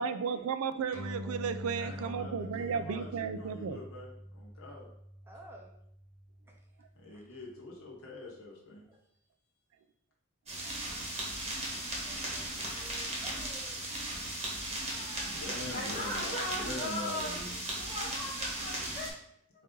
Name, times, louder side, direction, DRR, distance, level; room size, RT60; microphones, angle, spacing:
voice 1, 0.0-3.8, right 6 dB, 75° right, 10 dB, 0.4 m, -34 dB
sound 1, 0.9-7.8, left 1 dB, 60° right, 0.9 m, -45 dB
voice 2, 1.8-4.9 7.0-8.8 15.2-17.6, left 2 dB, 70° left, -3 dB, 0.9 m, -44 dB
voice 3, 5.3-5.7 6.5-6.6 7.1-7.4 8.8-9.0 10.9-11.0 12.7-12.8 13.2-14.0 16.6-16.8, right 1 dB, 10° right, 0 dB, 0.6 m, -53 dB
sound 2, 10.5-19.1, right 1 dB, 30° right, 1.0 m, -37 dB
voice 4, 12.0-13.4 14.9-17.4 17.8-19.1, left 1 dB, 25° left, -6 dB, 0.8 m, -40 dB
4.1 x 2.6 x 3.7 m, 0.71 s
head